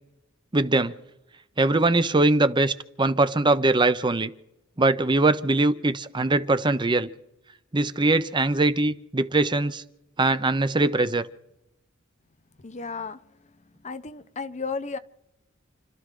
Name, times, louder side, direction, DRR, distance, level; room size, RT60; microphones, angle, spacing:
voice 1, 0.5-0.9 1.6-4.3 4.8-7.1 7.7-9.8 10.2-11.2, right 2 dB, 25° right, 0.7 m, -22 dB
voice 2, 12.6-13.2 13.8-15.0, left 4 dB, 35° left, 0.8 m, -33 dB
29.0 x 13.0 x 3.8 m
head